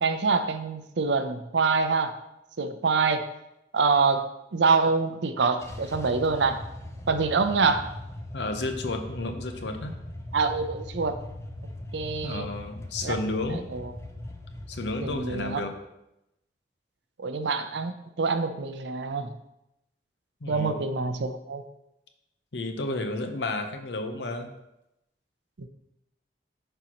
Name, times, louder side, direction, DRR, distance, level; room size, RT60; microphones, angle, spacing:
voice 1, 0.0-2.1 2.6-3.2 3.7-4.3 4.5-6.6 7.1-7.9 10.3-11.2 11.9-12.5 13.0-13.1 13.5-13.9 15.0-15.6 17.2-19.3 20.5-21.6 25.6-25.7, right 4 dB, 85° right, 9 dB, 0.6 m, -25 dB
sound 1, 5.6-15.6, left 1 dB, 15° left, 0.6 m, -40 dB
voice 2, 8.3-9.9 12.2-13.6 14.7-15.7 20.4-20.8 22.5-24.5, left 2 dB, 80° left, 6 dB, 0.8 m, -31 dB
10.5 x 4.5 x 2.9 m, 0.88 s
head